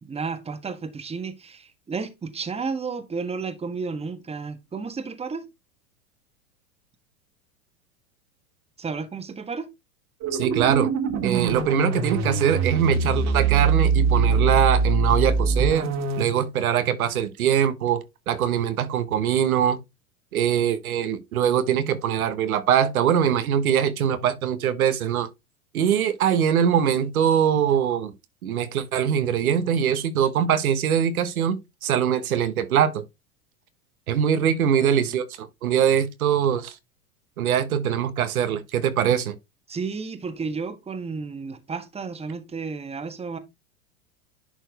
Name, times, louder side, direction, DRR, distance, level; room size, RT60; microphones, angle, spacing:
voice 1, 0.0-5.5 8.8-9.7 34.7-34.8 39.7-43.4, right 4 dB, 15° right, 1.4 m, -32 dB
sound 1, 10.2-16.2, right 4 dB, 40° right, 1.9 m, -23 dB
voice 2, 10.3-10.9 11.2-19.8 20.3-25.3 25.7-28.1 28.4-31.6 31.8-33.0 34.1-36.7 37.4-39.3, right 9 dB, 80° right, 1.4 m, -22 dB
10.5 x 4.5 x 3.4 m
hypercardioid pair, 105°, 42 cm